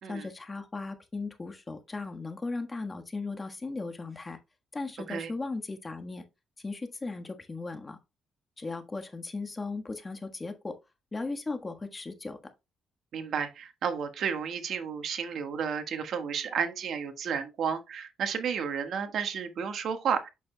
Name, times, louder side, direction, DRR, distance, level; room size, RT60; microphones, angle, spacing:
voice 1, 0.1-4.4 4.7-6.2 6.6-8.0 8.6-10.8 11.1-12.4, left 3 dB, 25° left, 1.4 m, -37 dB
voice 2, 13.1-20.3, right 7 dB, 65° right, 1.4 m, -32 dB
8.2 x 6.7 x 2.2 m
cardioid pair, 90°, 0 cm